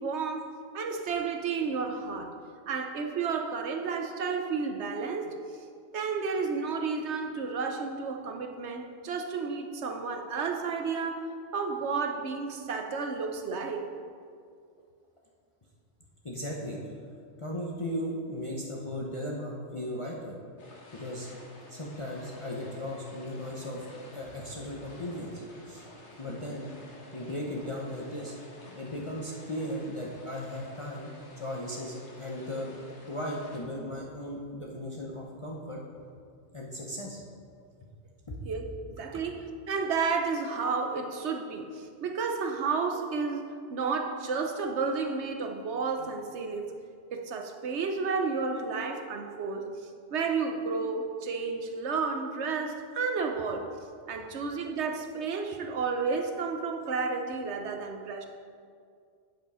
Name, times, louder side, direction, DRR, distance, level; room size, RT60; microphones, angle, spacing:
voice 1, 0.0-2.4 2.7-5.3 5.9-13.9 38.5-46.7 47.1-53.8 54.1-58.3, right 4 dB, 75° right, 5 dB, 1.1 m, -32 dB
voice 2, 16.2-16.8 17.4-20.4 20.9-21.3 21.7-23.9 24.1-25.8 26.2-26.7 27.1-28.3 28.8-32.7 33.1-35.8 36.5-37.2 38.3-38.5, left 1 dB, 30° left, -3 dB, 0.9 m, -36 dB
sound 1, 20.6-33.6, left 1 dB, 75° left, 1.6 m, -51 dB
8.1 x 7.4 x 5.5 m, 2.3 s
omnidirectional pair, 1.2 m